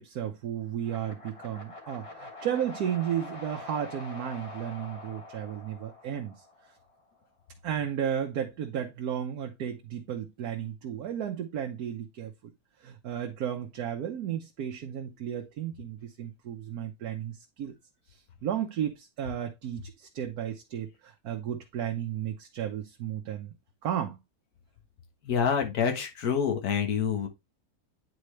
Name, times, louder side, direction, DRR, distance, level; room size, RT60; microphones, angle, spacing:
voice 1, 0.0-6.4 7.6-12.3 12.8-17.8 18.1-23.5 23.8-24.2, right 9 dB, 85° right, 1.3 m, -34 dB
sound 1, 0.8-6.9, left 2 dB, 20° left, 1.5 m, -45 dB
voice 2, 25.3-27.3, left 7 dB, 85° left, 1.6 m, -27 dB
9.4 x 3.9 x 3.2 m
omnidirectional pair, 1.6 m